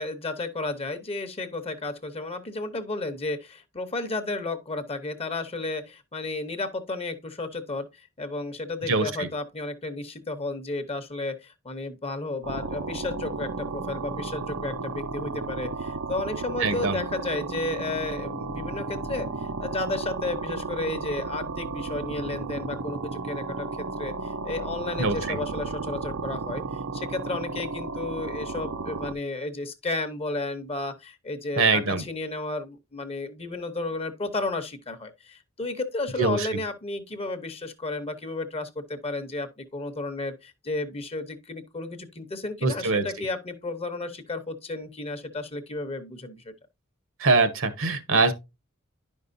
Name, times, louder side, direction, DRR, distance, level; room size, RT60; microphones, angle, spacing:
voice 1, 0.0-7.9 8.2-19.3 19.6-26.6 26.9-46.4, left 2 dB, 30° left, 0.8 m, -33 dB
voice 2, 8.9-9.3 16.6-17.0 25.0-25.4 31.6-32.0 36.2-36.5 42.6-43.0 47.2-48.3, right 3 dB, 65° right, 1.0 m, -23 dB
sound 1, 12.4-29.1, right 3 dB, 85° right, 0.6 m, -33 dB
10.5 x 5.4 x 2.6 m
head